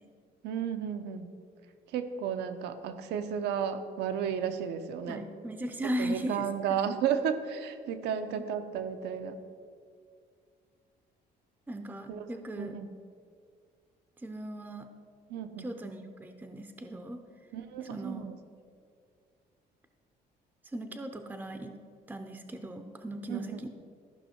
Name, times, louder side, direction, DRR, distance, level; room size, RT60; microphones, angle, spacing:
voice 1, 0.4-1.3 1.9-5.2 6.0-9.4 12.1-12.2 12.6-12.9 15.3-15.7 17.5-18.3 23.3-23.6, right 8 dB, 85° right, 8 dB, 0.8 m, -33 dB
voice 2, 5.1-6.5 8.1-8.4 11.7-12.8 14.2-14.9 15.6-17.2 17.9-18.2 20.7-21.8 22.1-23.7, right 1 dB, 10° right, 6 dB, 0.6 m, -38 dB
14.0 x 5.5 x 4.4 m, 2.2 s
cardioid pair, 110°, 17 cm